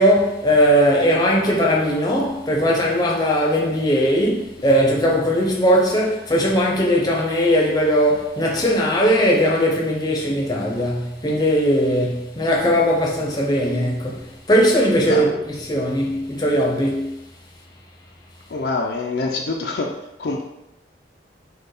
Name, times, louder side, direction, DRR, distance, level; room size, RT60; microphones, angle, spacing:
voice 1, 0.0-17.1, equal, 20° left, 0.7 m, -19 dB
voice 2, 18.5-19.9 20.2-20.4, left 3 dB, 60° left, 0.5 m, -25 dB
4.5 x 2.3 x 4.8 m
head